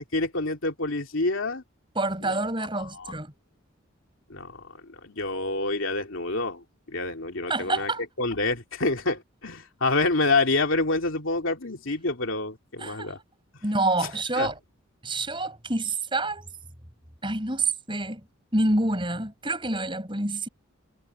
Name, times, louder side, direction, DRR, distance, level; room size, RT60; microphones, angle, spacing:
voice 1, 0.0-1.6 2.6-3.1 4.3-7.9 8.2-13.2 14.4-14.5, left 3 dB, 70° left, 2.7 m, -27 dB
voice 2, 1.9-3.3 7.5-8.0 12.8-13.1 13.6-14.5 15.0-16.5 17.2-18.2 18.5-20.5, right 2 dB, 25° right, 8.0 m, -27 dB
head